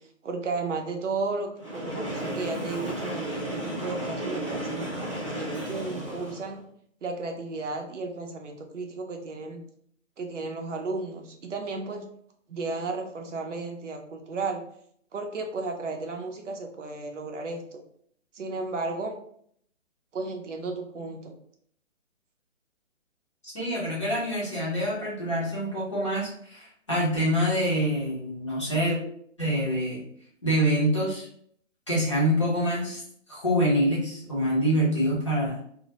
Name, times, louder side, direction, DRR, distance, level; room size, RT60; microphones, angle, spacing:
voice 1, 0.2-4.9 5.4-6.6 7.0-9.6 10.2-12.0 12.5-14.6 15.1-17.8 18.3-19.1 20.1-21.3, right 3 dB, 65° right, 3 dB, 0.6 m, -34 dB
Train, 1.6-6.6, right 1 dB, 25° right, 0.5 m, -33 dB
voice 2, 23.4-29.0 29.4-30.0 30.4-31.3 31.9-33.0 33.3-35.6, equal, 25° left, -8 dB, 0.5 m, -26 dB
2.1 x 2.0 x 2.8 m, 0.66 s
hypercardioid pair, 155°, 39 cm